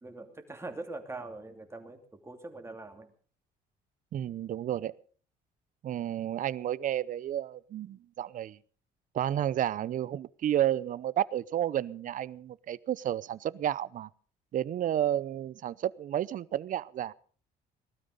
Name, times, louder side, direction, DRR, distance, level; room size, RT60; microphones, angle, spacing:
voice 1, 0.0-3.1, right 2 dB, 15° right, 5 dB, 2.9 m, -43 dB
voice 2, 4.1-4.9 5.8-8.6 9.1-14.1 14.5-17.1, right 11 dB, 50° right, 20 dB, 0.7 m, -31 dB
20.0 x 12.5 x 5.2 m, 0.43 s
cardioid pair, 110°, 17 cm